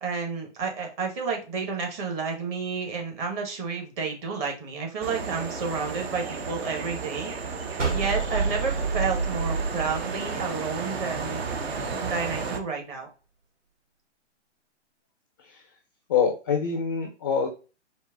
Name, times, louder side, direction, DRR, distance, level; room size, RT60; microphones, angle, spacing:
voice 1, 0.0-7.3 7.9-11.4 12.0-13.1, right 5 dB, 30° right, 2 dB, 1.4 m, -31 dB
sound 1, 5.0-12.6, right 4 dB, 55° right, 0.9 m, -33 dB
sound 2, 7.8-11.0, right 4 dB, 85° right, 1.4 m, -28 dB
voice 2, 16.1-17.5, left 6 dB, 20° left, 3 dB, 0.3 m, -25 dB
4.5 x 2.9 x 3.6 m, 0.33 s
hypercardioid pair, 135°, 36 cm